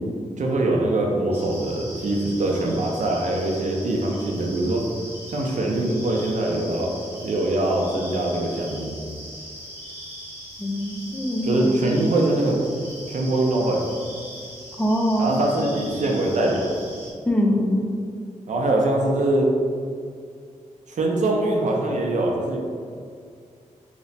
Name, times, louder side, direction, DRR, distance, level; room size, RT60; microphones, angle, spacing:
voice 1, 0.4-4.9 5.3-6.9 7.2-8.9 11.4-12.6 13.1-13.8 15.2-16.8 18.5-19.5 20.9-22.6, right 2 dB, 65° right, -1 dB, 0.5 m, -23 dB
sound 1, 1.3-17.1, equal, 15° right, 0.9 m, -40 dB
voice 2, 10.6-12.1 14.8-15.3 17.3-17.9, equal, 10° left, 0 dB, 0.3 m, -23 dB
2.9 x 2.1 x 4.0 m, 2.2 s
wide cardioid pair, 125°, 13 cm